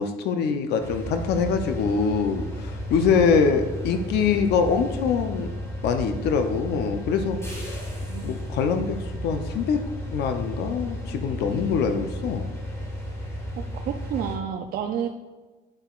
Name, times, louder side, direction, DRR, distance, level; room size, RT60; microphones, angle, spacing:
voice 1, 0.0-5.5 5.8-7.8 8.2-9.0 9.2-9.8 10.1-12.4, left 6 dB, 75° left, 7 dB, 0.6 m, -24 dB
sound 1, 0.8-14.4, equal, 15° left, 1.7 m, -33 dB
voice 2, 13.9-15.1, right 9 dB, 65° right, 4 dB, 0.5 m, -29 dB
8.9 x 5.6 x 2.4 m, 1.2 s
cardioid pair, 110°, 17 cm